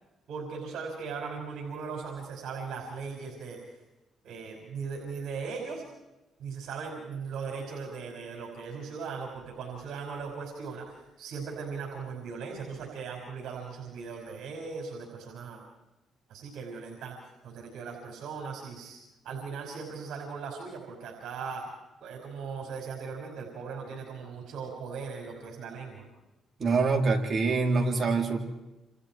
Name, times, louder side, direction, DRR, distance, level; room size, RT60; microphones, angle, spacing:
voice 1, 0.3-3.6 4.2-5.8 6.4-15.6 16.3-17.2 17.4-19.0 19.2-21.7 22.0-26.1, right 5 dB, 75° right, 0 dB, 5.3 m, -38 dB
voice 2, 26.6-28.4, right 4 dB, 45° right, 2 dB, 3.9 m, -25 dB
28.5 x 28.0 x 4.6 m, 0.99 s
cardioid pair, 90°, 0 cm